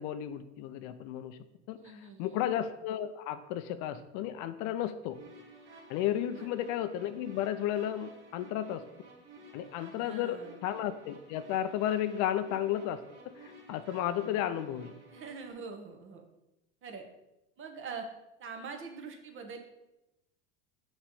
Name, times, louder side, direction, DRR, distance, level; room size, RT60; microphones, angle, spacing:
voice 1, 0.0-1.4 1.7-5.2 5.9-8.8 9.5-14.9, left 11 dB, 55° left, 12 dB, 0.5 m, -33 dB
voice 2, 1.7-2.4 6.3-6.5 9.9-10.6 14.1-14.4 15.1-16.2 16.8-17.0 17.6-18.1 18.4-19.6, right 5 dB, 35° right, 4 dB, 1.1 m, -44 dB
sound 1, 5.1-15.5, right 2 dB, 80° right, 1.7 m, -54 dB
5.9 x 3.2 x 5.4 m, 0.94 s
hypercardioid pair, 100°, 34 cm